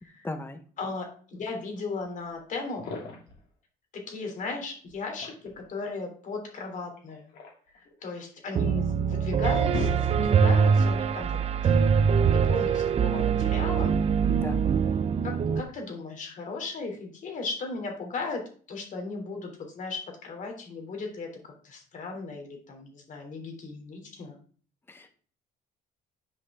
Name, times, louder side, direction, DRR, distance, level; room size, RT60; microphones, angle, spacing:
voice 1, 0.2-0.6 14.4-14.7 24.9-25.1, left 2 dB, 15° left, 7 dB, 1.1 m, -36 dB
voice 2, 0.8-2.9 3.9-7.2 7.7-11.9 12.3-13.9 15.2-18.4 18.7-24.3, left 3 dB, 50° left, 3 dB, 3.0 m, -37 dB
sound 1, 2.7-3.4 4.9-5.7 7.0-8.4 8.9-9.0 9.4-10.5, left 3 dB, 65° left, 3.1 m, -39 dB
Piano, 8.6-15.6, right 6 dB, 40° right, 0.6 m, -23 dB
10.0 x 5.1 x 3.6 m, 0.43 s
cardioid pair, 110°, 17 cm